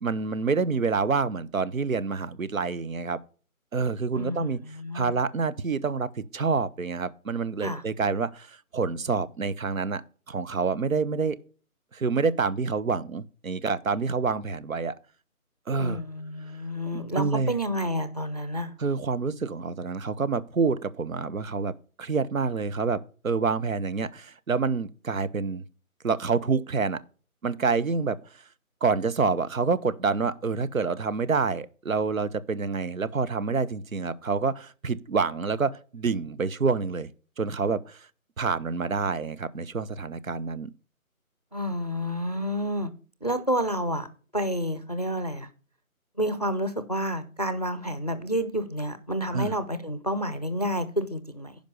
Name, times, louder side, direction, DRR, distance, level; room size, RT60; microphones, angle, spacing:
voice 1, 0.0-3.2 3.7-4.6 4.9-10.0 10.3-11.4 11.9-14.9 15.7-16.0 16.9-17.6 18.8-21.7 22.0-25.6 26.0-27.0 27.4-28.2 28.8-37.1 37.4-38.1 38.4-40.7 49.3-49.5, right 4 dB, 70° right, 0.9 m, -27 dB
voice 2, 4.1-5.1 7.6-7.8 15.8-18.7 41.5-42.9 43.2-44.1 44.3-45.5 46.2-51.6, equal, 30° left, 0.5 m, -29 dB
10.5 x 5.3 x 6.6 m
figure-of-eight pair, 165°, 43 cm